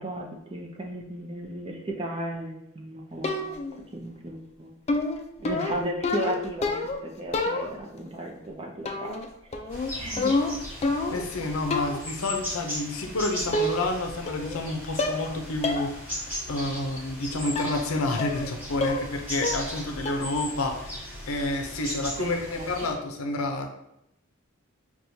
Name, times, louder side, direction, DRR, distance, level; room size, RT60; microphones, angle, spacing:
voice 1, 0.0-3.7 3.9-4.7 5.4-6.8 7.2-9.1 9.4-9.5 10.0-10.4 22.2-22.9, right 1 dB, 25° right, 0 dB, 0.6 m, -35 dB
sound 1, 3.2-3.8 4.9-7.0 7.3-8.0 8.9-9.3 9.5-11.3 11.7-12.1 13.0-13.1 13.5-14.0 14.3-14.7 15.0-15.3 15.6-15.9 16.3-16.4 17.6-17.8 18.2-18.5 18.8-19.1 19.4-19.8 20.1-20.4, left 2 dB, 30° left, 0.4 m, -28 dB
sound 2, 9.7-22.9, equal, 10° right, 1.4 m, -37 dB
voice 2, 11.1-23.7, left 2 dB, 70° left, 4 dB, 0.6 m, -29 dB
6.0 x 2.3 x 2.7 m, 0.81 s
head